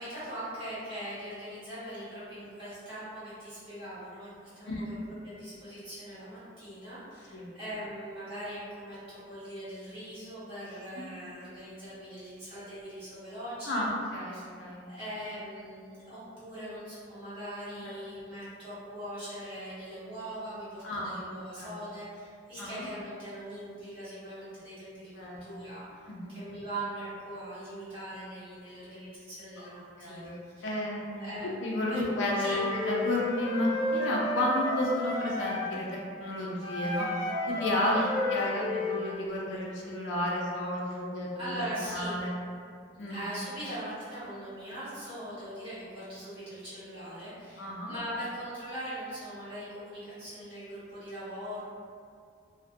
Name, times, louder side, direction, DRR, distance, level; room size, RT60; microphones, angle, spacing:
voice 1, 0.0-13.8 14.3-14.5 14.8-25.1 25.4-30.8 31.2-32.0 32.4-32.6 37.9-38.3 40.8-40.9 41.3-42.2 43.1-51.6, right 1 dB, 30° right, -14 dB, 1.2 m, -41 dB
voice 2, 13.7-14.8 17.8-17.9 20.8-21.1 21.6-21.7 22.6-22.9 25.1-25.6 26.1-26.4 30.0-30.4 30.6-31.3 31.6-38.0 38.3-41.6 41.9-42.3 43.0-43.2 47.6-47.9, left 1 dB, 75° left, -3 dB, 0.5 m, -32 dB
Wind instrument woodwind instrument, 32.1-35.8 36.6-39.2, left 2 dB, 25° left, 0.8 m, -32 dB
2.3 x 2.1 x 2.5 m, 2.2 s
head